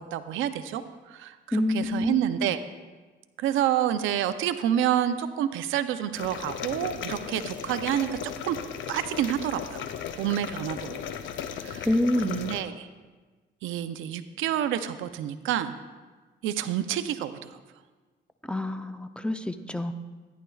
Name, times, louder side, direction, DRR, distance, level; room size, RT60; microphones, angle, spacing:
voice 1, 0.0-2.6 3.4-8.6 8.9-9.9 10.2-11.0 11.6-11.9 12.2-12.9 13.6-15.7 16.4-17.6, right 11 dB, 90° right, 11 dB, 0.5 m, -28 dB
voice 2, 1.5-2.3 11.9-12.5 18.4-19.9, left 1 dB, 5° left, 8 dB, 0.5 m, -27 dB
sound 1, 6.2-12.6, left 8 dB, 75° left, 0.7 m, -36 dB
14.5 x 10.0 x 2.3 m, 1.3 s
cardioid pair, 90°, 20 cm